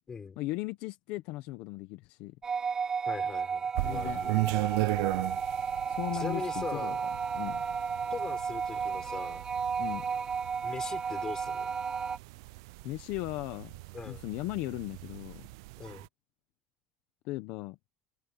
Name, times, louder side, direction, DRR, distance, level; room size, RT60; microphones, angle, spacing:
voice 1, 0.4-2.4 3.8-4.2 5.9-6.9 7.3-7.6 9.8-10.1 12.8-13.7 14.1-15.5 17.2-17.8, left 19 dB, 70° left, 1.1 m, -37 dB
sound 1, 2.4-12.2, right 6 dB, 25° right, 0.8 m, -33 dB
voice 2, 3.0-4.3 6.1-7.0 8.1-9.4 10.6-11.7 13.9-14.2 15.8-16.1, left 5 dB, 25° left, 4.6 m, -41 dB
sound 2, 3.7-16.1, right 24 dB, 85° right, 0.3 m, -37 dB
cardioid pair, 130°, 3 cm